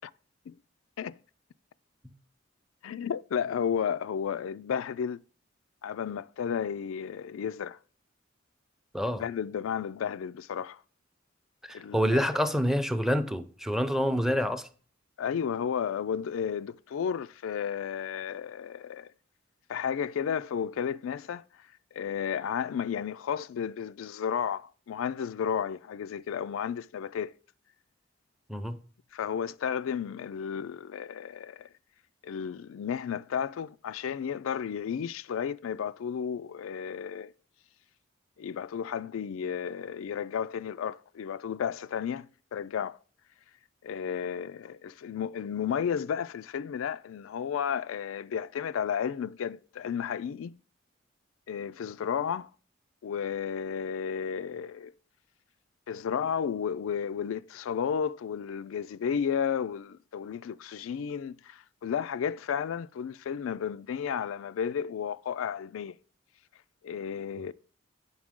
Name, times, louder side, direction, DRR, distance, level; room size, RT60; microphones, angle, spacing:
voice 1, 2.8-5.2 5.8-7.8 9.1-10.8 11.7-12.2 15.2-19.1 19.7-21.4 21.9-27.4 29.1-31.7 32.2-37.3 38.4-42.3 42.5-43.0 43.8-50.6 51.5-52.5 53.0-54.9 55.9-66.0 66.8-67.5, left 7 dB, 90° left, 0.4 m, -33 dB
voice 2, 11.6-14.7 28.5-28.8 67.4-67.5, equal, ahead, 0.5 m, -27 dB
9.5 x 6.3 x 3.6 m
head